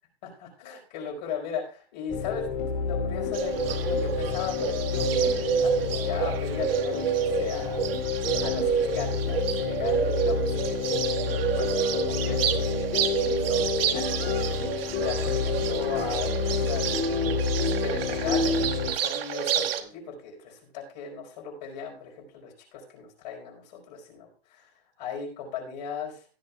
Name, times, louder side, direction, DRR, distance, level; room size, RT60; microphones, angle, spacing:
voice 1, 0.6-7.9 8.4-10.9 11.4-12.8 13.1-26.2, left 6 dB, 40° left, 0 dB, 4.6 m, -38 dB
sound 1, 2.1-18.9, left 5 dB, 25° left, 3.6 m, -29 dB
Bird, 3.3-19.8, right 8 dB, 65° right, 1.3 m, -29 dB
17.5 x 10.0 x 2.3 m, 0.36 s
supercardioid pair, 165°, 31 cm